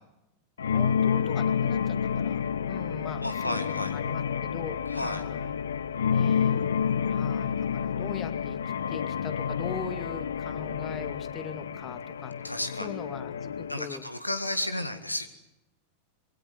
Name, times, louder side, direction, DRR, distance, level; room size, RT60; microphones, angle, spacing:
sound 1, 0.6-13.8, left 7 dB, 65° left, 0.9 m, -29 dB
voice 1, 0.7-2.4 2.7-5.5 6.1-6.7 7.1-8.6 8.9-12.5 12.8-14.0, left 6 dB, 25° left, 9 dB, 2.1 m, -41 dB
voice 2, 3.2-4.0 4.9-5.2 12.4-13.0 13.7-15.3, left 1 dB, 85° left, 10 dB, 1.8 m, -32 dB
26.0 x 22.5 x 7.8 m, 0.96 s
figure-of-eight pair, 90°, 0 cm